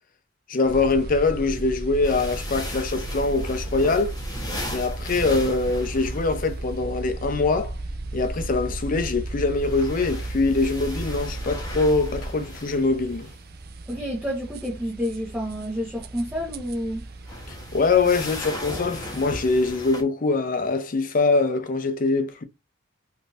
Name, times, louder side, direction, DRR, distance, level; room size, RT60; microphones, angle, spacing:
voice 1, 0.5-4.2 4.7-7.7 8.1-13.3 17.5-22.4, left 3 dB, 40° left, 0.5 m, -23 dB
sound 1, 0.6-19.7, right 2 dB, 45° right, 0.4 m, -35 dB
sound 2, 2.0-6.6 9.4-13.4 17.1-20.0, left 1 dB, 20° left, 1.0 m, -37 dB
voice 2, 13.9-17.0, equal, 10° right, 0.9 m, -29 dB
3.6 x 2.6 x 2.4 m
head